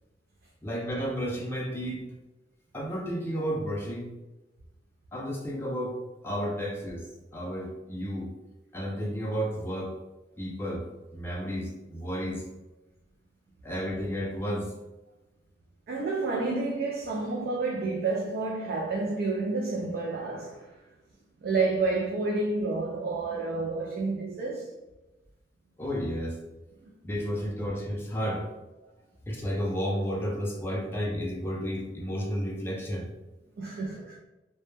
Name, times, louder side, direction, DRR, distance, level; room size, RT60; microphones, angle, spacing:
voice 1, 0.6-2.1 2.7-4.1 5.1-7.1 7.3-8.3 8.7-9.9 10.4-10.9 11.1-12.4 13.6-14.7 25.8-26.4 27.0-28.4 29.3-33.1, equal, 15° left, 0.4 m, -32 dB
voice 2, 15.9-20.8 21.4-24.7 26.8-26.9 33.6-34.2, right 3 dB, 60° right, 0.3 m, -30 dB
2.1 x 2.0 x 3.1 m
head